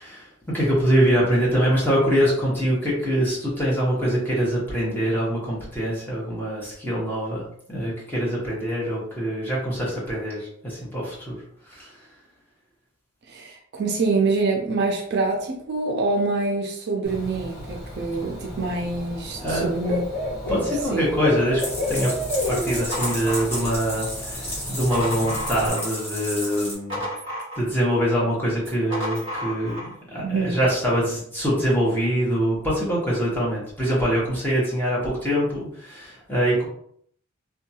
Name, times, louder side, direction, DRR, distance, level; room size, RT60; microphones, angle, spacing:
voice 1, 0.0-11.4 11.7-12.0 19.4-19.7 20.5-21.6 21.9-22.1 22.5-27.1 27.6-36.7, equal, 10° left, -6 dB, 1.0 m, -24 dB
voice 2, 13.3-20.0 20.4-21.1 30.2-30.6, right 3 dB, 50° right, 1 dB, 0.4 m, -26 dB
Bird / Cricket, 17.0-25.7, left 1 dB, 55° left, 1.3 m, -31 dB
sound 1, 21.6-26.7, equal, 30° left, 1.2 m, -33 dB
sound 2, 22.9-24.1 24.6-26.0 26.4-27.9 28.6-29.9, equal, 25° right, 1.3 m, -32 dB
2.7 x 2.3 x 2.7 m, 0.66 s
head